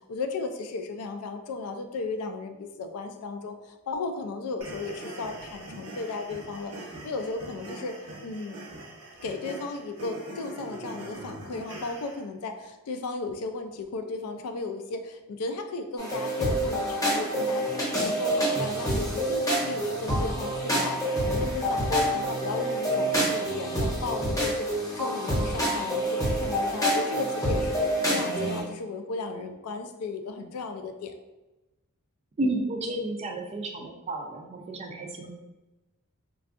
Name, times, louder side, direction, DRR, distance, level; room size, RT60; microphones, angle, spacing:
voice 1, 0.1-8.0 8.2-8.6 9.2-31.1, left 3 dB, 75° left, 6 dB, 0.4 m, -35 dB
sound 1, 4.6-12.2, right 1 dB, 90° right, 0.8 m, -42 dB
sound 2, 16.0-28.6, right 1 dB, 15° left, 0.8 m, -27 dB
voice 2, 32.4-35.3, right 1 dB, 30° right, 3 dB, 0.3 m, -31 dB
3.5 x 2.3 x 2.4 m, 1.0 s
head